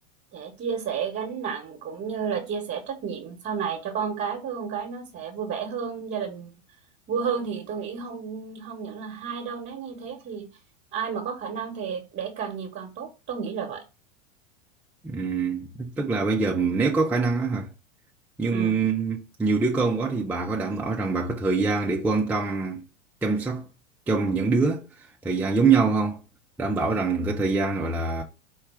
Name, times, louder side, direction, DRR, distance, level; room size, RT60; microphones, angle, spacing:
voice 1, 0.3-6.5 7.1-10.5 10.9-13.8 18.5-18.8, right 6 dB, 30° right, 1.1 m, -32 dB
voice 2, 15.0-17.7 18.4-22.8 23.2-23.7 24.1-26.2 26.6-28.2, right 4 dB, 5° right, 0.4 m, -24 dB
4.6 x 2.3 x 4.7 m
hypercardioid pair, 100°, 39 cm